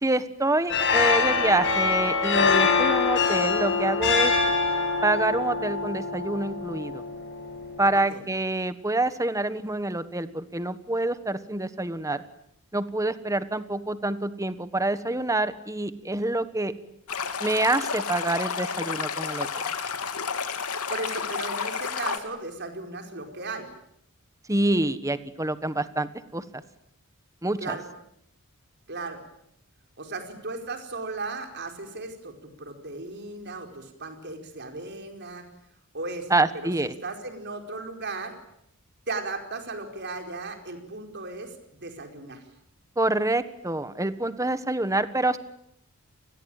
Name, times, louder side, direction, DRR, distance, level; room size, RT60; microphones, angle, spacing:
voice 1, 0.0-4.3 5.0-7.0 7.8-12.2 12.7-16.7 17.4-19.5 24.5-26.6 27.4-27.8 36.3-37.0 43.0-45.4, right 2 dB, 15° right, 13 dB, 1.3 m, -26 dB
sound 1, 0.7-8.0, left 5 dB, 55° left, 6.7 m, -24 dB
Stream, 17.1-22.2, left 6 dB, 85° left, 2.9 m, -31 dB
voice 2, 20.9-23.7 27.6-27.9 28.9-29.2 30.0-35.4 35.9-36.3 36.6-38.3 39.1-41.5 41.8-42.4, right 3 dB, 50° right, 5 dB, 4.8 m, -36 dB
29.5 x 20.5 x 9.0 m, 0.74 s
head